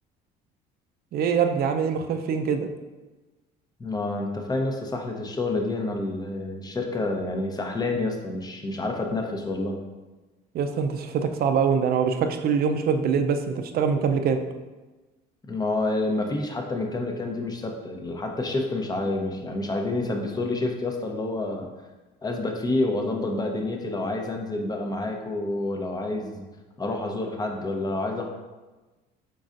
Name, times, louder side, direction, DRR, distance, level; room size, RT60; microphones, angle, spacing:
voice 1, 1.1-2.7 10.5-14.4, right 6 dB, 55° right, 7 dB, 0.5 m, -24 dB
voice 2, 3.8-9.8 15.5-21.7 22.2-26.4 26.8-28.3, left 2 dB, 20° left, 2 dB, 0.7 m, -28 dB
5.3 x 3.9 x 2.5 m, 1.2 s
cardioid pair, 100°, 19 cm